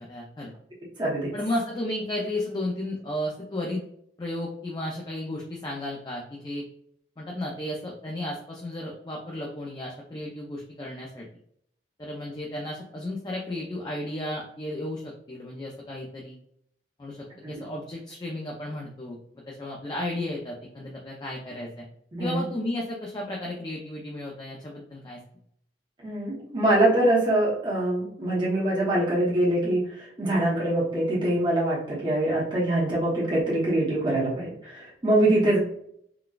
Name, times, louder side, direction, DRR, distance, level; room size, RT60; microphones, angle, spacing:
voice 1, 0.1-0.5 1.3-3.8 4.2-6.6 7.2-11.3 12.0-16.4 17.0-19.2 19.5-21.8 22.2-25.2 35.5-35.6, left 1 dB, 25° left, -2 dB, 0.4 m, -33 dB
voice 2, 1.0-1.3 17.4-17.6 22.1-22.4 26.0-35.6, right 1 dB, 25° right, -6 dB, 0.9 m, -24 dB
3.9 x 2.2 x 2.3 m, 0.69 s
head